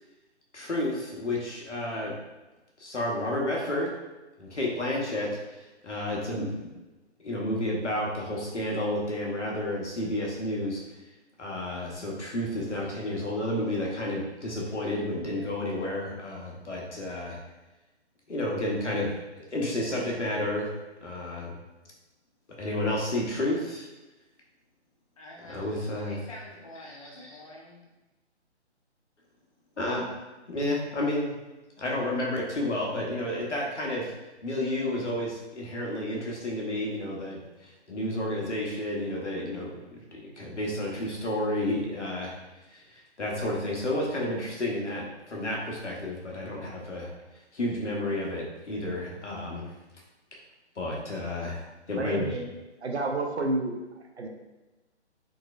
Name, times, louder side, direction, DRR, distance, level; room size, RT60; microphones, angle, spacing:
voice 1, 0.5-2.1 2.8-3.9 4.4-6.7 7.2-10.8 11.4-17.4 18.3-19.1 19.5-20.7 21.0-21.6 22.6-23.9 25.4-26.2 27.2-27.4 29.8-30.1 30.5-31.3 31.8-34.1 34.4-39.7 40.1-42.3 42.7-47.1 47.5-49.7 50.8-51.6 51.9-52.4, left 1 dB, 75° left, -2 dB, 1.1 m, -31 dB
voice 2, 25.2-27.9, left 1 dB, 30° left, -3 dB, 0.7 m, -47 dB
voice 3, 52.0-52.5 52.8-53.7 54.2-54.3, right 2 dB, 65° right, 2 dB, 0.7 m, -29 dB
3.7 x 3.0 x 2.4 m, 1.1 s
figure-of-eight pair, 145°, 35 cm